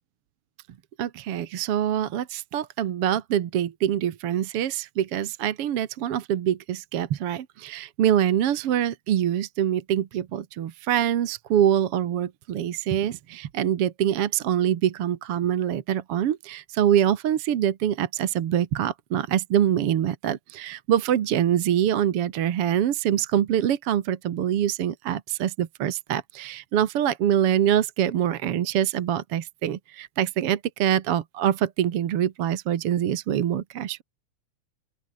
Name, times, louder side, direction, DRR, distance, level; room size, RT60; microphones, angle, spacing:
voice 1, 1.0-34.0, right 10 dB, 55° right, 1.9 m, -24 dB
open air
omnidirectional pair, 3.5 m